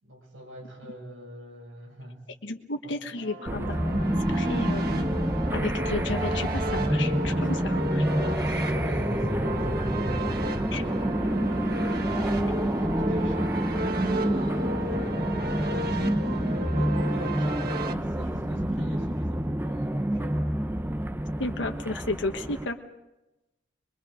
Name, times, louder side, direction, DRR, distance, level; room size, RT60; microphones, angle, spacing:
voice 1, 0.0-2.2 2.8-3.0 7.2-7.7 8.2-20.5, equal, 90° right, 2 dB, 6.4 m, -44 dB
voice 2, 2.4-5.2 5.5-8.0 10.7-10.8 21.4-22.8, left 2 dB, 65° left, 4 dB, 1.3 m, -33 dB
sound 1, 3.2-17.9, right 1 dB, 55° right, 1.4 m, -35 dB
sound 2, 3.5-22.7, right 1 dB, 10° right, 0.7 m, -27 dB
23.5 x 23.5 x 5.0 m, 0.98 s
head